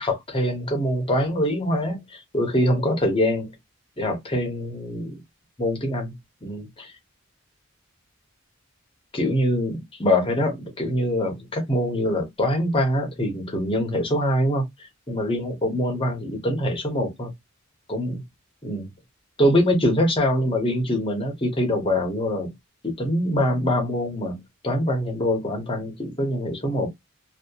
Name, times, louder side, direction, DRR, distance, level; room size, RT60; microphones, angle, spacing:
voice 1, 0.0-3.5 4.0-5.2 5.6-6.1 6.4-6.9 9.1-9.7 10.0-14.7 15.1-17.3 17.9-18.2 18.6-18.9 19.4-22.5 22.8-26.9, left 1 dB, 25° left, 0.8 m, -24 dB
2.7 x 2.0 x 2.3 m
head